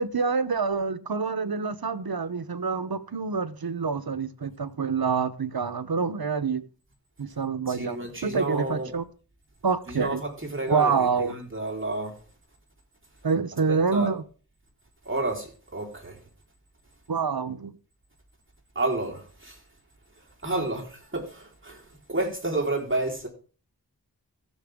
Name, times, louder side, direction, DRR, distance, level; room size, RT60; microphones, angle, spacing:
voice 1, 0.0-6.6 7.2-9.0 9.6-10.2 10.7-11.3 13.2-14.2 17.1-17.7, right 5 dB, 70° right, 0.9 m, -27 dB
voice 2, 7.7-8.9 9.9-10.9 11.2-12.1 13.9-14.1 15.1-16.2 18.7-19.6 20.4-21.8 22.1-23.3, right 2 dB, 30° right, 4.3 m, -30 dB
16.5 x 6.9 x 3.6 m
wide cardioid pair, 45°, 38 cm